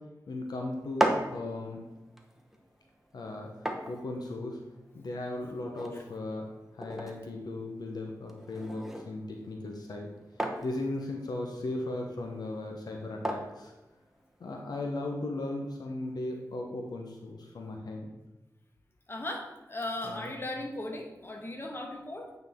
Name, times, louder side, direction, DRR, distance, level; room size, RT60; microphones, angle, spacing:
voice 1, 0.3-1.8 3.1-3.5 3.9-4.6 4.9-6.4 6.7-10.1 10.6-13.7 14.4-18.1 20.0-20.3, left 2 dB, 75° left, 1 dB, 0.9 m, -37 dB
sound 1, 0.7-14.6, right 1 dB, 5° right, 1.0 m, -38 dB
voice 2, 19.1-22.4, left 1 dB, 35° left, 1 dB, 1.3 m, -37 dB
8.9 x 4.1 x 3.6 m, 1.0 s
cardioid pair, 55°, 7 cm